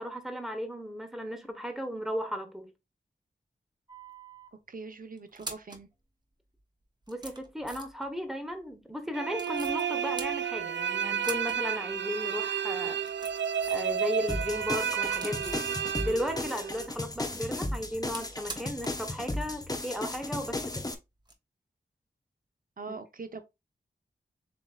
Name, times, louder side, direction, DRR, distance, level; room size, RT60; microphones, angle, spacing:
voice 1, 0.0-2.7 7.1-13.1 13.7-15.6 16.0-20.8, equal, ahead, 1.1 m, -35 dB
sound 1, 3.9-4.5 5.2-5.9 6.6-6.7 7.0-8.1 9.3-9.8 10.2-10.8 11.1-11.6 11.9-12.0 12.8-13.9 14.3-15.7 17.1-19.1 19.3-19.4 21.2-21.3, right 2 dB, 25° right, 0.9 m, -44 dB
voice 2, 4.7-5.9 22.8-23.4, right 4 dB, 50° right, 0.8 m, -42 dB
sound 2, 9.1-16.9, right 8 dB, 90° right, 0.5 m, -31 dB
sound 3, 14.3-20.9, left 1 dB, 20° left, 0.7 m, -35 dB
7.2 x 2.9 x 2.4 m
wide cardioid pair, 85°, 18 cm